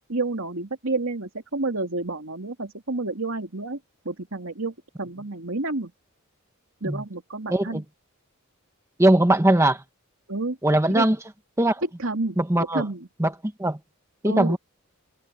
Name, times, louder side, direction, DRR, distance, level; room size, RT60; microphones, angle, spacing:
voice 1, 0.1-3.8 4.0-5.9 6.8-7.8 10.3-10.6 10.9-11.1 12.0-12.4 12.7-13.1 14.2-14.6, right 2 dB, 70° right, 2.9 m, -29 dB
voice 2, 7.5-7.8 9.0-9.8 10.6-11.2 11.6-11.8 12.4-12.8 13.2-13.3 13.6-13.8 14.2-14.6, right 1 dB, 15° right, 1.2 m, -20 dB
head